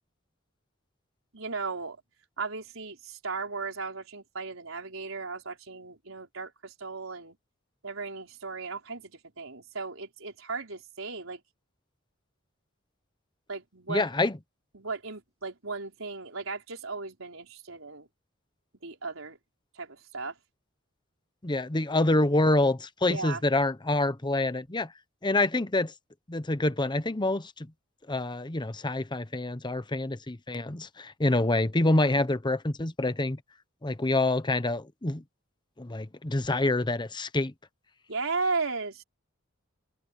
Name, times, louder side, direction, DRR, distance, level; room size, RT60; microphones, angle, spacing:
voice 1, 1.3-2.0 2.4-7.4 7.8-11.4 13.5-14.1 14.7-18.1 18.8-19.4 19.7-20.3 23.0-23.4 38.1-39.0, right 4 dB, 85° right, 4.6 m, -36 dB
voice 2, 13.9-14.3 21.4-24.9 25.2-25.9 26.3-27.5 28.1-33.4 33.8-35.2 35.8-37.5, left 2 dB, 20° left, 0.9 m, -26 dB
head